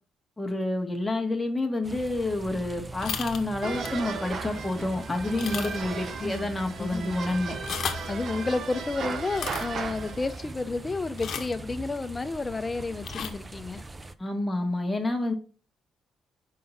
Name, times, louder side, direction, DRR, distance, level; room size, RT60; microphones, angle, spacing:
voice 1, 0.4-7.6 14.2-15.3, left 2 dB, 10° left, 1.5 m, -29 dB
sound 1, 1.8-14.1, right 2 dB, 20° right, 0.5 m, -41 dB
sound 2, 3.0-3.4 3.8-4.0 4.5-4.6 5.3-6.0 6.2-6.3 7.5-8.1 9.3-9.7 11.2-11.6 13.0-13.3, left 7 dB, 60° left, 1.0 m, -34 dB
sound 3, 3.6-10.5, right 5 dB, 55° right, 0.8 m, -36 dB
voice 2, 6.8-7.1 8.1-13.8, left 3 dB, 25° left, 0.6 m, -31 dB
5.5 x 3.8 x 5.6 m
cardioid pair, 90°, 0 cm